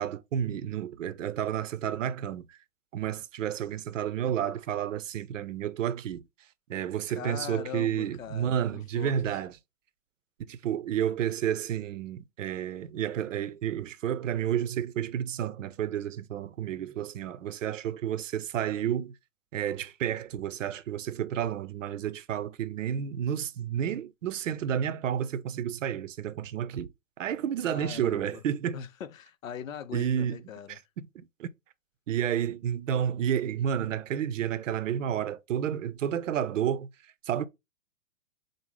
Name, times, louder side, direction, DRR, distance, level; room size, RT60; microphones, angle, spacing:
voice 1, 0.0-2.6 2.9-6.2 6.7-9.5 10.5-19.1 19.5-26.9 27.2-28.8 29.9-30.4 30.7-31.5 32.1-36.9 37.2-37.5, right 9 dB, 70° right, 0.5 m, -31 dB
voice 2, 7.2-9.4 27.7-28.4 28.7-30.8, left 8 dB, 75° left, 0.6 m, -41 dB
5.1 x 2.0 x 3.1 m
figure-of-eight pair, 115°, 40 cm